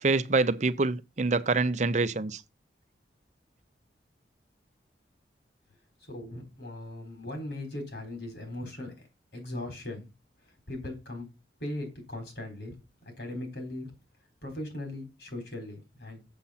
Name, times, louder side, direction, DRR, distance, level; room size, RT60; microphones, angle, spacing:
voice 1, 0.0-2.4, right 3 dB, 40° right, 0.6 m, -26 dB
voice 2, 6.1-9.1 9.3-10.1 10.7-11.3 11.6-12.7 13.2-13.9 14.4-16.2, left 1 dB, 70° left, 4.0 m, -38 dB
7.2 x 7.1 x 5.7 m
head